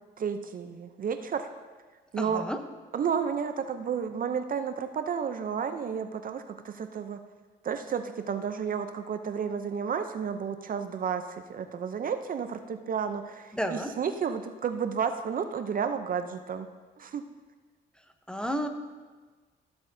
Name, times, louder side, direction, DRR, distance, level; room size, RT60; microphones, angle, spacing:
voice 1, 0.2-1.5 2.1-2.5 2.9-7.2 7.6-16.7 17.0-17.2, right 7 dB, 45° right, 9 dB, 0.5 m, -32 dB
voice 2, 2.2-2.6 13.5-13.9 18.3-18.7, equal, 5° left, 6 dB, 0.7 m, -31 dB
13.5 x 7.9 x 2.6 m, 1.4 s
cardioid pair, 90°, 20 cm